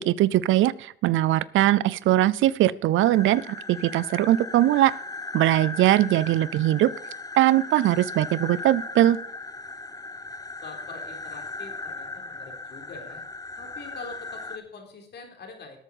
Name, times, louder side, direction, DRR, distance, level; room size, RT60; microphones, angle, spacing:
voice 1, 0.0-3.4 3.7-4.9 5.3-6.9 7.4-9.2, right 14 dB, 85° right, 20 dB, 0.6 m, -21 dB
sound 1, 3.0-14.6, left 3 dB, 20° left, 1.0 m, -37 dB
voice 2, 10.6-13.2 13.6-15.8, left 4 dB, 60° left, 3 dB, 3.9 m, -44 dB
12.5 x 8.4 x 5.4 m, 0.64 s
cardioid pair, 90°, 20 cm